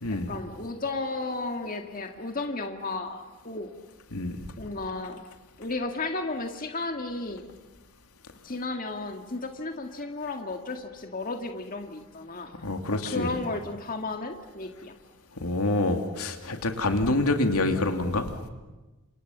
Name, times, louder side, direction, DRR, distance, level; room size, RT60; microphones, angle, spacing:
voice 1, 0.1-3.7 4.6-5.2 5.6-7.5 8.4-12.5 12.9-15.0, left 3 dB, 40° left, 4 dB, 1.9 m, -34 dB
voice 2, 12.6-13.3 15.4-18.3, left 2 dB, 80° left, 5 dB, 2.9 m, -26 dB
29.5 x 27.5 x 7.4 m, 1.2 s
head